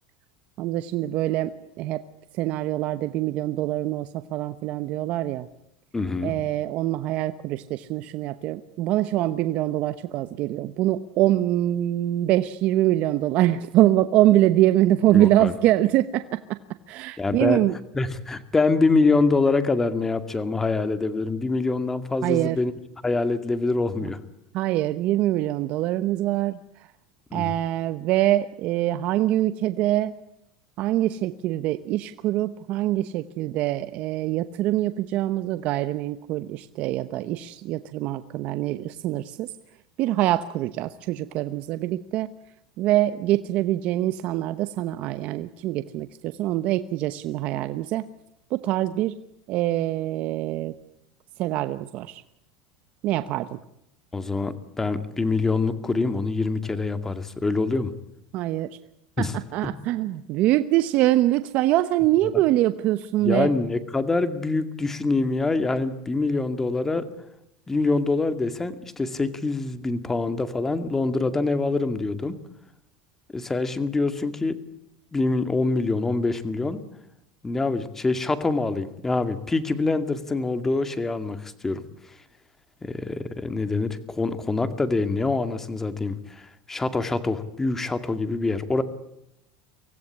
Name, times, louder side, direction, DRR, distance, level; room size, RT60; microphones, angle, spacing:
voice 1, 0.6-2.0 2.4-5.5 6.2-16.6 16.9-17.8 22.2-22.6 24.5-26.6 27.3-30.2 30.8-39.5 40.0-42.3 42.8-48.1 48.5-49.2 49.5-50.7 51.4-52.2 53.0-53.6 58.3-58.8 59.2-63.5, right 14 dB, 55° right, 12 dB, 1.0 m, -24 dB
voice 2, 5.9-6.3 15.1-15.5 17.2-17.6 17.9-22.7 23.0-24.2 27.3-27.5 54.1-57.9 59.2-59.3 62.3-62.4 63.2-67.1 67.7-72.4 73.3-74.6 75.1-76.8 77.4-81.8 82.8-88.8, left 3 dB, 15° left, 11 dB, 2.2 m, -25 dB
24.5 x 17.0 x 9.8 m, 0.82 s
supercardioid pair, 125°, 3 cm